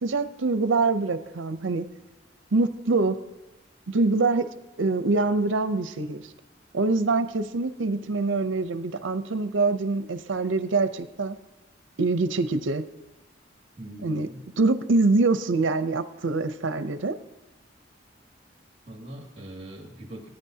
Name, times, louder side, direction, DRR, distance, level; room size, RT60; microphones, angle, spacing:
voice 1, 0.0-1.9 2.5-3.2 3.9-4.5 4.8-6.2 6.7-11.4 12.0-12.8 14.0-14.3 14.6-17.2, right 3 dB, 80° right, 12 dB, 0.7 m, -24 dB
voice 2, 13.8-14.4 18.9-20.3, right 1 dB, 30° right, 1 dB, 2.2 m, -41 dB
20.0 x 9.8 x 2.8 m, 1.1 s
head